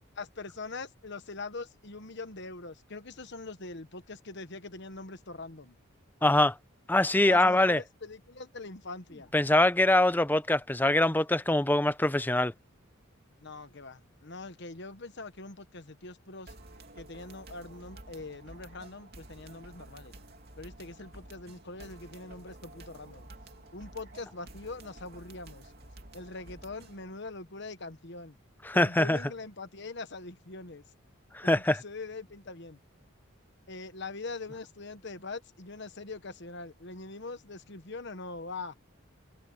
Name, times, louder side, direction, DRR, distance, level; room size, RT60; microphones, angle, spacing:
voice 1, 0.2-5.8 7.3-9.3 13.4-16.5 17.0-20.1 20.6-23.3 23.7-25.7 26.1-28.4 28.7-30.8 31.4-32.8 33.7-38.7, left 3 dB, 55° left, 1.2 m, -42 dB
voice 2, 6.2-6.5 6.9-7.8 9.3-12.5 28.6-29.2 31.3-31.8, left 1 dB, 10° left, 0.5 m, -23 dB
sound 1, 16.5-27.1, right 2 dB, 50° right, 3.0 m, -51 dB
head